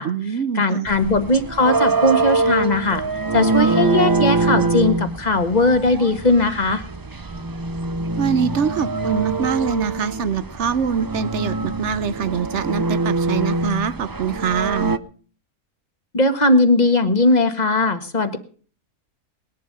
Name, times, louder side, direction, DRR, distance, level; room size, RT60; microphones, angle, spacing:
voice 1, 0.0-0.9 8.2-15.0, right 7 dB, 55° right, 16 dB, 1.1 m, -24 dB
voice 2, 0.5-3.0 3.3-6.8 16.1-18.4, left 2 dB, 30° left, 8 dB, 1.7 m, -18 dB
sound 1, 0.9-15.0, right 3 dB, 35° right, 0.3 m, -24 dB
20.0 x 11.0 x 5.4 m, 0.42 s
omnidirectional pair, 1.5 m